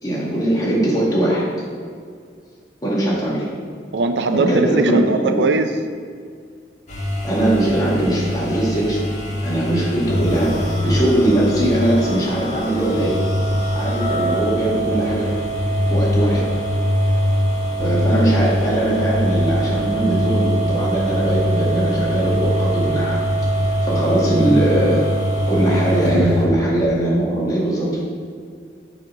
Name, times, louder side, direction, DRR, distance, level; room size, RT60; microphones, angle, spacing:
voice 1, 0.0-1.4 2.8-3.5 4.3-5.4 7.2-9.0 9.4-13.2 13.8-15.3 15.9-16.4 17.8-23.2 23.6-25.0 25.5-28.0, right 1 dB, 20° left, -7 dB, 2.1 m, -20 dB
voice 2, 3.9-5.7 26.1-26.3, right 3 dB, 75° right, 8 dB, 0.5 m, -19 dB
sound 1, 6.9-26.5, equal, 45° left, 1.3 m, -22 dB
6.8 x 4.3 x 6.1 m, 2.1 s
head